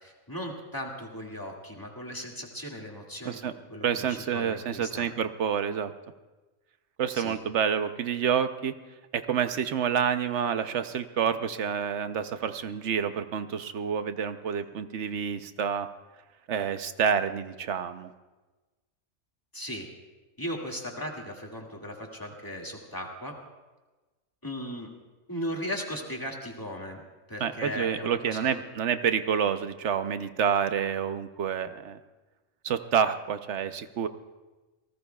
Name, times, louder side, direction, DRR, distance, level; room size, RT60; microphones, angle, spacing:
voice 1, 0.0-5.1 7.1-7.4 19.5-19.9 20.4-23.3 24.4-24.9 25.3-27.0 27.3-28.5, equal, 15° left, -1 dB, 2.0 m, -37 dB
voice 2, 3.8-5.9 7.0-8.7 9.1-15.9 16.5-18.1 27.4-32.0 32.6-34.1, right 7 dB, 70° right, 10 dB, 1.0 m, -28 dB
28.5 x 19.0 x 2.3 m, 1.2 s
omnidirectional pair, 1.3 m